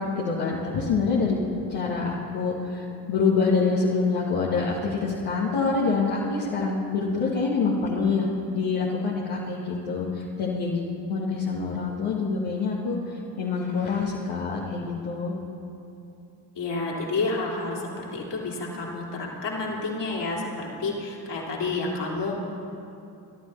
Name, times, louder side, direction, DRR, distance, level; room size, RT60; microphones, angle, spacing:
voice 1, 0.0-1.4 1.7-13.0 13.4-15.3, left 4 dB, 75° left, -5 dB, 1.7 m, -26 dB
voice 2, 16.6-22.4, left 3 dB, 55° left, -3 dB, 3.1 m, -30 dB
23.5 x 12.0 x 3.3 m, 2.7 s
hypercardioid pair, 45°, 49 cm